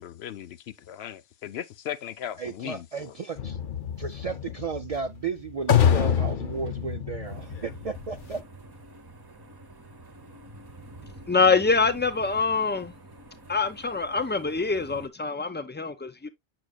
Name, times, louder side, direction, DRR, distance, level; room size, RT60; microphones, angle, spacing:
voice 1, 0.0-3.1, left 10 dB, 85° left, 0.9 m, -38 dB
voice 2, 2.4-3.6 4.0-8.4, right 5 dB, 55° right, 0.4 m, -34 dB
sound 1, 3.4-8.4, left 8 dB, 55° left, 0.8 m, -26 dB
sound 2, 7.2-15.1, right 2 dB, 25° right, 0.9 m, -47 dB
voice 3, 11.3-12.9 13.5-16.3, left 4 dB, 10° left, 0.5 m, -24 dB
7.9 x 6.2 x 2.2 m
omnidirectional pair, 1.1 m